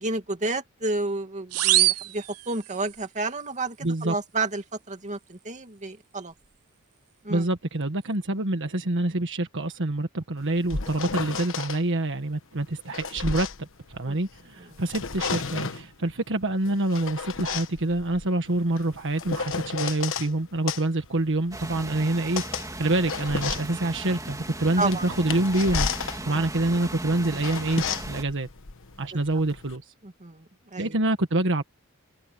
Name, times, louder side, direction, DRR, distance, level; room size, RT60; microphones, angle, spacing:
voice 1, 0.0-6.3 7.2-7.4 14.1-14.2 24.8-25.1 26.3-26.4 30.0-30.4 30.7-31.0, right 3 dB, 35° right, 2.4 m, -31 dB
sound 1, 1.5-3.0, right 15 dB, 90° right, 0.8 m, -24 dB
voice 2, 3.8-4.1 7.3-25.9 26.2-28.5 29.0-29.9 30.8-31.6, right 2 dB, 60° right, 1.5 m, -26 dB
sound 2, 10.4-11.8 12.6-14.4 14.7-15.9 16.6-20.3 20.7-29.8, left 5 dB, 60° left, 1.2 m, -33 dB
sound 3, 21.5-28.2, right 2 dB, 15° right, 3.0 m, -37 dB
open air
head